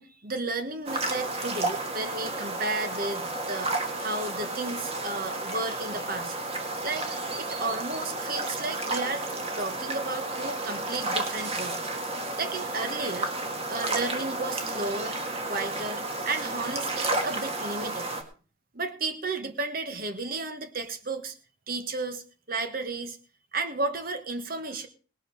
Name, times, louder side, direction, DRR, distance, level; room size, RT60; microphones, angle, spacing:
voice 1, 0.0-6.4 6.8-9.2 9.6-11.8 12.4-13.3 13.7-15.2 15.5-18.1 18.7-21.3 21.7-22.2 22.5-23.2 23.5-24.9, right 3 dB, 45° right, 8 dB, 1.4 m, -33 dB
sound 1, 0.9-18.2, right 2 dB, 30° right, 1.8 m, -32 dB
18.5 x 6.4 x 6.4 m, 0.39 s
head